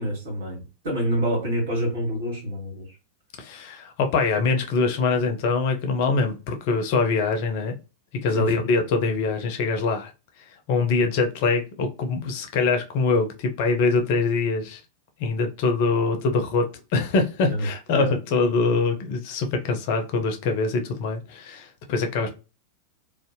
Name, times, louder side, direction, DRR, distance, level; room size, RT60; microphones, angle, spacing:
voice 1, 0.0-2.9 8.3-8.5 17.5-18.1, equal, 60° right, 1.4 m, -27 dB
voice 2, 3.4-7.8 8.2-10.1 10.7-14.8 15.2-22.4, left 4 dB, 50° left, 0.5 m, -24 dB
2.6 x 2.1 x 2.6 m
figure-of-eight pair, 90°, 0 cm